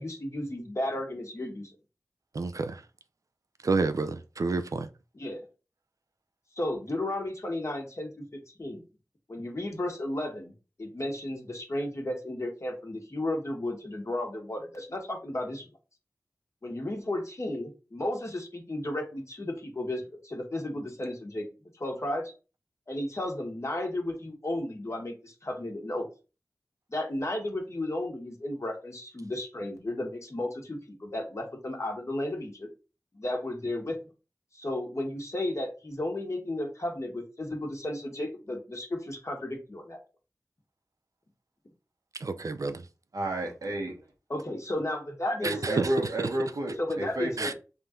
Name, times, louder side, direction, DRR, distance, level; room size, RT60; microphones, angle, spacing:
voice 1, 0.0-1.7 5.1-5.4 6.5-8.8 9.3-10.5 10.8-15.7 16.6-21.4 21.8-22.3 22.9-26.1 26.9-32.7 33.1-34.0 34.5-40.0 44.3-45.8 46.8-47.5, left 1 dB, 50° left, 1.4 m, -33 dB
voice 2, 2.3-2.8 3.6-4.9 42.2-42.8 45.4-45.9 47.4-47.5, right 3 dB, 65° right, 0.4 m, -29 dB
voice 3, 43.1-44.1 45.4-47.5, right 1 dB, 90° right, 1.2 m, -31 dB
3.5 x 2.5 x 4.3 m
wide cardioid pair, 45°, 6 cm